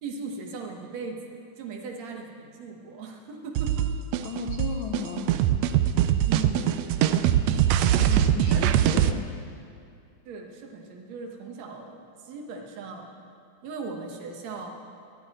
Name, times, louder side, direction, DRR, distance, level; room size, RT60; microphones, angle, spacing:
voice 1, 0.0-3.9 6.3-7.2 8.0-8.9 10.3-12.0 12.2-13.1 13.6-14.7, right 4 dB, 65° right, 2 dB, 2.5 m, -38 dB
sound 1, 3.6-9.1, right 11 dB, 80° right, 1.5 m, -22 dB
voice 2, 4.2-5.4 7.1-7.3 8.0-9.3, left 7 dB, 70° left, 1 dB, 1.2 m, -35 dB
23.5 x 11.5 x 4.3 m, 2.4 s
omnidirectional pair, 3.4 m